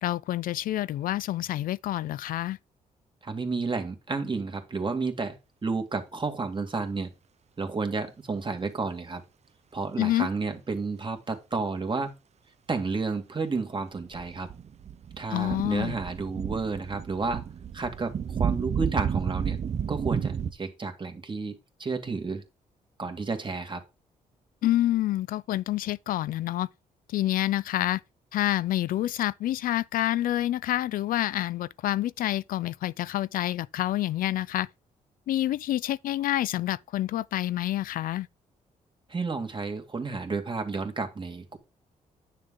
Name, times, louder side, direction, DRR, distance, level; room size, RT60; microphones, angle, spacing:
voice 1, 0.0-2.6 10.0-10.3 15.3-16.0 24.6-26.7 27.1-28.0 28.3-34.7 35.3-38.3, left 14 dB, 75° left, 0.4 m, -28 dB
voice 2, 3.2-7.1 7.6-9.2 9.7-12.1 12.7-14.5 15.2-17.4 17.7-19.6 19.9-22.4 23.0-23.8 39.1-41.6, right 4 dB, 35° right, 2.2 m, -31 dB
sound 1, 14.0-20.5, right 8 dB, 50° right, 0.8 m, -32 dB
9.8 x 6.7 x 3.8 m
cardioid pair, 70°, 15 cm